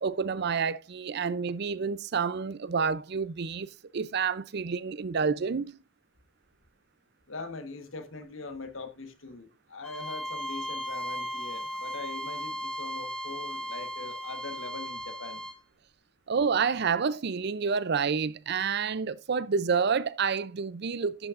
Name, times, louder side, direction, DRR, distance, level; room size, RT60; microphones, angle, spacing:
voice 1, 0.0-5.8 16.3-21.3, right 5 dB, 55° right, 0.5 m, -29 dB
voice 2, 7.3-15.4, left 3 dB, 75° left, 1.4 m, -42 dB
Bowed string instrument, 9.8-15.6, equal, 5° left, 1.8 m, -36 dB
11.5 x 8.4 x 2.5 m
head